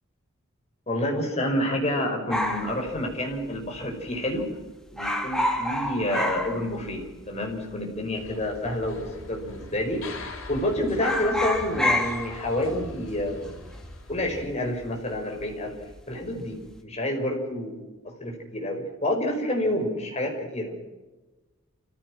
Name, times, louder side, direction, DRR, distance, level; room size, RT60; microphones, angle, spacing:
voice 1, 0.9-4.5 4.9-13.6 14.1-15.8 16.1-20.7, left 1 dB, 30° left, 1 dB, 5.4 m, -29 dB
sound 1, 2.3-3.8 4.0-4.1 4.4-4.6 4.9-7.2 7.5-7.6 8.4-9.0 9.3-9.6 9.9-10.6 10.9-15.5 15.8-16.3, left 1 dB, 5° left, 2.0 m, -29 dB
sound 2, 8.1-14.4, left 2 dB, 80° left, 5.0 m, -43 dB
29.0 x 15.5 x 6.0 m, 1.2 s
head